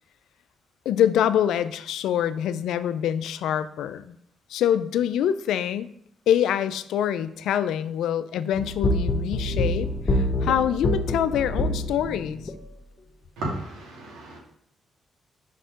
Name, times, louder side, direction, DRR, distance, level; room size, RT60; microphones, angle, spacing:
voice 1, 0.9-4.2 4.5-5.9 6.3-12.5, left 10 dB, 80° left, 13 dB, 0.3 m, -25 dB
sound 1, 8.5-12.6, left 1 dB, 45° left, 1.0 m, -26 dB
voice 2, 13.4-14.4, right 1 dB, 85° right, -3 dB, 2.2 m, -33 dB
5.4 x 4.3 x 5.1 m, 0.72 s
supercardioid pair, 55°, 0 cm